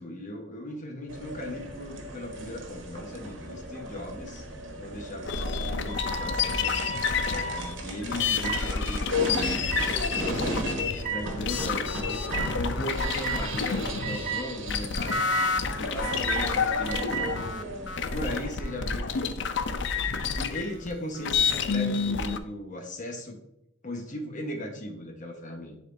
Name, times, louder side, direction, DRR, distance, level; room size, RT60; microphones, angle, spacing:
voice 1, 0.0-4.5 4.8-6.9 7.3-9.3 10.1-10.7 11.1-17.4 18.1-19.3 20.3-23.4 23.8-25.8, left 1 dB, 40° left, 3 dB, 1.2 m, -37 dB
sound 1, 1.1-18.6, right 1 dB, 85° right, 1.1 m, -37 dB
sound 2, 5.2-14.3 14.6-22.4, left 5 dB, 70° left, 0.5 m, -29 dB
sound 3, 5.8-7.6 8.4-8.6 9.7-9.9 11.0-11.2 12.3-12.5 13.0-13.4 14.0-14.4 15.1-15.5 16.0-16.4 16.9-17.3, right 5 dB, 45° right, 1.2 m, -33 dB
10.0 x 4.2 x 2.6 m, 0.85 s
head